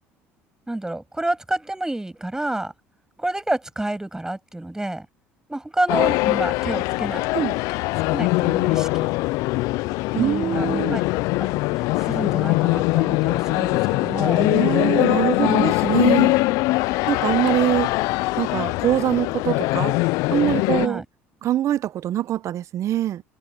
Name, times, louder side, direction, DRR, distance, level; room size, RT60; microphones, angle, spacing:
voice 1, 0.7-2.7 3.2-5.1 5.5-7.3 8.1-9.1 10.1-11.0 11.4-11.5 11.7-14.5 15.4-15.6 20.8-21.1, right 1 dB, 10° right, 7.1 m, -29 dB
sound 1, 5.9-20.9, left 22 dB, 75° left, 0.5 m, -22 dB
voice 2, 10.2-11.1 14.4-16.3 17.1-17.9 18.4-19.9 20.3-21.0 21.4-23.2, right 12 dB, 55° right, 1.1 m, -23 dB
supercardioid pair, 75°, 6 cm